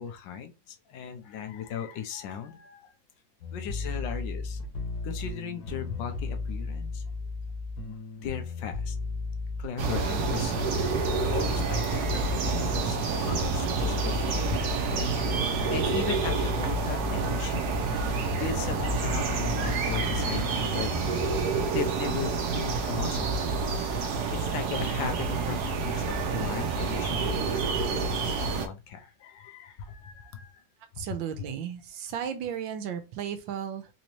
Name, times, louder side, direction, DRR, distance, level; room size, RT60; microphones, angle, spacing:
voice 1, 0.0-2.9 3.5-4.6 5.0-7.0 7.8-8.9 9.6-10.8 11.3-14.6 14.9-15.0 15.7-17.7 18.4-20.9 21.7-23.3 24.3-30.6 31.0-31.1 31.4-31.5, left 8 dB, 85° left, 1.4 m, -37 dB
sound 1, 3.4-21.4, left 3 dB, 65° left, 1.4 m, -35 dB
sound 2, 9.8-28.7, right 4 dB, 65° right, 1.1 m, -28 dB
voice 2, 31.0-33.9, right 8 dB, 90° right, 1.4 m, -34 dB
4.0 x 2.7 x 3.0 m
omnidirectional pair, 2.0 m